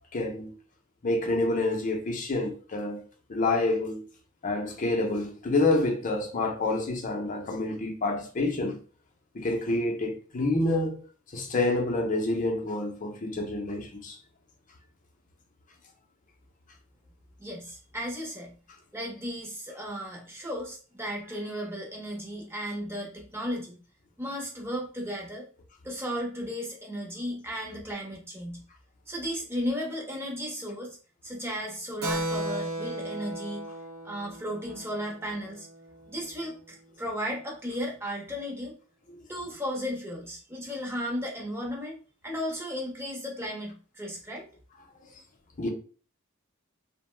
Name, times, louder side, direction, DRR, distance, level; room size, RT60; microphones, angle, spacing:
voice 1, 0.1-0.5 1.0-3.0 3.3-4.0 4.4-8.8 9.3-11.0 11.3-14.2 45.6-45.7, left 2 dB, 40° left, 0.6 m, -28 dB
voice 2, 17.4-18.5 18.9-23.7 24.2-25.5 25.8-28.6 29.1-31.0 31.2-33.7 34.0-35.7 36.1-38.7 39.3-42.0 42.2-44.4, equal, 10° right, 0.8 m, -35 dB
Keyboard (musical), 32.0-36.1, right 1 dB, 80° right, 0.7 m, -35 dB
2.6 x 2.1 x 3.2 m
head